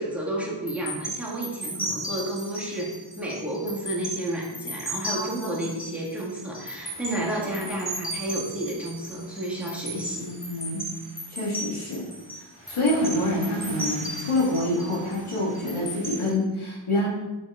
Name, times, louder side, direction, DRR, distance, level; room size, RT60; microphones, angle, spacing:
voice 1, 0.0-10.3, right 1 dB, 5° right, -4 dB, 1.8 m, -31 dB
sound 1, 0.7-16.3, right 1 dB, 25° left, 1.9 m, -36 dB
voice 2, 5.1-5.5 10.2-10.8 11.3-12.1 12.7-17.1, left 1 dB, 85° left, -4 dB, 1.7 m, -26 dB
6.0 x 5.5 x 3.6 m, 1.1 s
wide cardioid pair, 65°, 48 cm